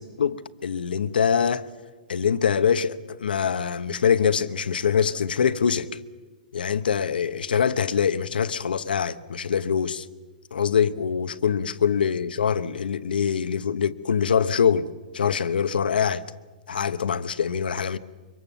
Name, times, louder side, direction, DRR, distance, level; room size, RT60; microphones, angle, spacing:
voice 1, 0.0-1.7 2.1-5.9 6.5-10.1 10.5-16.2 16.7-18.0, left 7 dB, 90° left, 1.0 m, -24 dB
25.0 x 23.0 x 7.1 m
hypercardioid pair, 140°, 5 cm